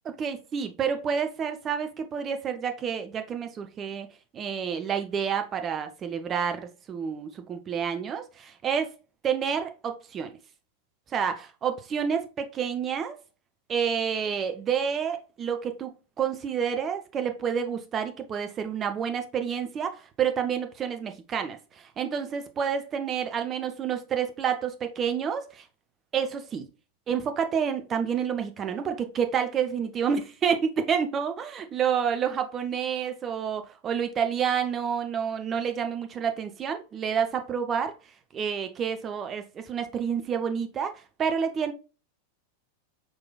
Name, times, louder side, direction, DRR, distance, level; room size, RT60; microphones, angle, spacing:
voice 1, 0.0-4.1 4.3-8.9 9.2-10.4 11.1-13.2 13.7-15.9 16.2-25.6 26.1-26.7 27.1-37.9 38.3-40.9 41.2-41.7, right 7 dB, 25° right, 0.6 m, -29 dB
4.8 x 3.9 x 2.3 m
figure-of-eight pair, 90°, 0 cm